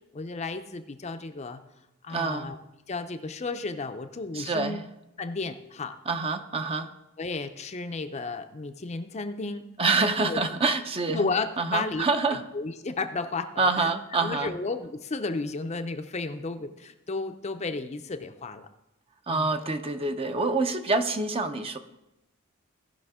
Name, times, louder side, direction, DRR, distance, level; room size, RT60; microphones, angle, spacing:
voice 1, 0.1-1.6 2.0-2.6 2.9-4.8 5.2-6.0 7.2-9.7 10.2-10.4 11.1-13.9 14.2-18.7 19.3-19.5, left 3 dB, 30° left, 8 dB, 0.5 m, -33 dB
voice 2, 2.1-2.5 4.3-4.8 6.1-6.9 9.8-11.3 11.6-12.4 13.6-14.5 19.3-21.8, right 3 dB, 25° right, 7 dB, 0.6 m, -26 dB
17.0 x 5.8 x 3.6 m, 0.93 s
head